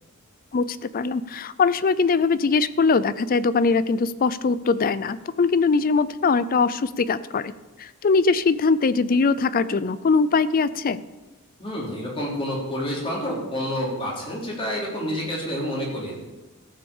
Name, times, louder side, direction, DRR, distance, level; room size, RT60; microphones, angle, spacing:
voice 1, 0.5-7.5 7.8-11.0, left 4 dB, 40° left, 16 dB, 0.4 m, -21 dB
voice 2, 11.6-16.1, equal, 25° left, -4 dB, 3.5 m, -28 dB
15.0 x 6.1 x 7.1 m, 1.1 s
head